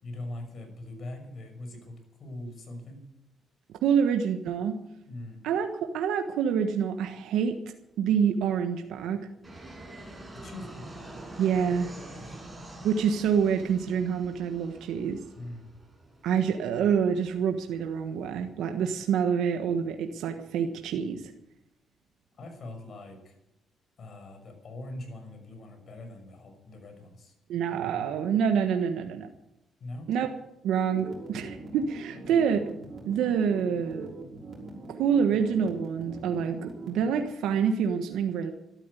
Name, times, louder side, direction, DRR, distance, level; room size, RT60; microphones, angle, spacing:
voice 1, 0.0-3.0 5.1-5.4 10.4-10.9 12.1-12.4 15.4-15.7 22.4-23.4 24.0-27.3 29.8-30.1, left 1 dB, 55° left, 5 dB, 6.0 m, -42 dB
voice 2, 3.8-4.7 5.4-5.7 5.9-7.5 8.0-9.2 11.4-11.9 12.8-15.2 16.2-21.3 27.5-29.3 30.1-30.3 30.6-32.6 33.1-34.1 35.0-38.5, right 7 dB, 85° right, 5 dB, 1.3 m, -27 dB
Fixed-wing aircraft airplane, 9.4-18.5, right 1 dB, 15° right, 6.7 m, -46 dB
sound 1, 30.9-37.2, right 3 dB, 40° right, 5.7 m, -43 dB
13.0 x 13.0 x 8.3 m, 0.85 s
cardioid pair, 90°, 0 cm